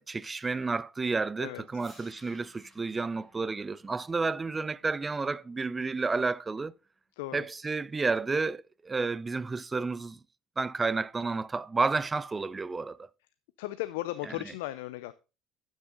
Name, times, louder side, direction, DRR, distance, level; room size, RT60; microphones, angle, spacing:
voice 1, 0.0-6.7 7.3-10.2 10.6-13.1, right 4 dB, 20° right, 0.4 m, -31 dB
sound 1, 1.7-7.8, equal, 10° left, 4.8 m, -61 dB
voice 2, 7.2-7.5 13.6-15.1, left 16 dB, 90° left, 0.5 m, -36 dB
12.0 x 6.3 x 3.9 m
supercardioid pair, 95°, 0 cm